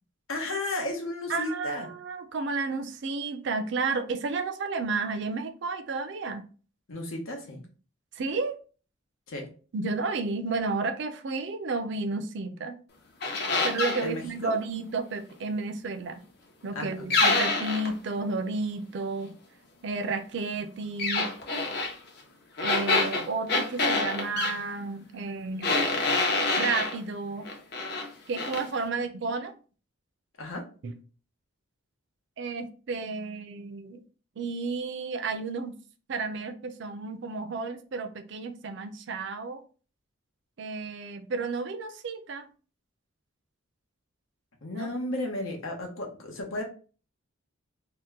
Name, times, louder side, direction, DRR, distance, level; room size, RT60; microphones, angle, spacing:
voice 1, 0.3-1.9 6.9-7.6 9.3-9.5 14.0-14.6 16.7-17.0 30.4-30.6 44.6-46.6, left 2 dB, 80° left, 0.9 m, -33 dB
voice 2, 1.3-6.4 8.2-8.6 9.7-12.7 13.6-16.2 16.6-19.3 19.8-21.3 22.6-25.7 26.6-27.5 28.3-29.5 30.8-30.9 32.4-34.0 34.4-35.7 36.1-39.6 40.6-42.5 44.7-44.9, right 3 dB, 55° right, 0.4 m, -32 dB
sound 1, 13.2-14.1 17.1-17.9 21.0-21.9 22.6-24.6 25.6-27.0 27.4-28.1 28.4-28.6, left 3 dB, 50° left, 0.7 m, -26 dB
2.8 x 2.1 x 3.5 m
head